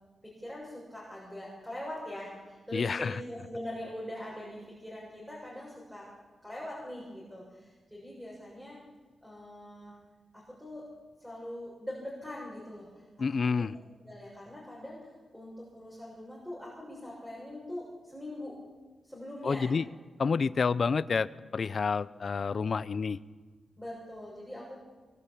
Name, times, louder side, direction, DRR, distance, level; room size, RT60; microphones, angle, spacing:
voice 1, 0.2-6.1 6.4-8.8 9.2-10.0 10.3-10.8 11.2-13.0 13.3-13.7 14.0-18.6 19.0-19.7 23.8-24.8, left 1 dB, ahead, -5 dB, 6.9 m, -42 dB
voice 2, 2.7-3.2 13.2-13.8 19.4-19.9 20.2-23.2, left 5 dB, 50° left, 16 dB, 0.7 m, -29 dB
24.5 x 21.5 x 8.5 m, 1.4 s
wide cardioid pair, 120°, 0 cm